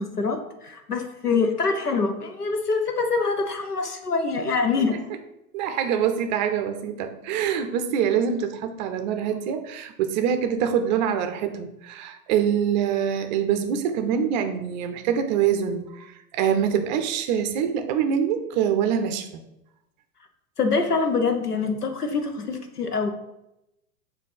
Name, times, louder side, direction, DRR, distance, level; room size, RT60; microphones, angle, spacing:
voice 1, 0.0-5.0 20.6-23.1, left 4 dB, 85° left, 6 dB, 1.0 m, -25 dB
voice 2, 5.5-19.4, right 8 dB, 30° right, 7 dB, 0.5 m, -25 dB
7.3 x 2.7 x 5.5 m, 0.88 s
figure-of-eight pair, 95°, 45 cm